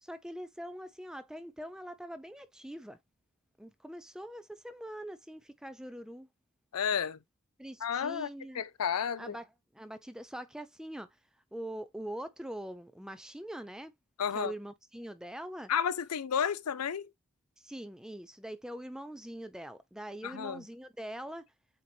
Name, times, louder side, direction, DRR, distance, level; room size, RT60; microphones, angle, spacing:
voice 1, 0.0-3.0 3.6-6.3 7.6-8.6 9.2-11.2 11.5-13.9 14.3-15.7 17.6-21.5, right 1 dB, 5° right, 0.4 m, -43 dB
voice 2, 6.7-7.2 7.8-8.3 8.6-9.4 14.2-14.5 15.7-17.1 20.2-20.6, left 7 dB, 90° left, 0.5 m, -31 dB
7.7 x 2.9 x 2.3 m
head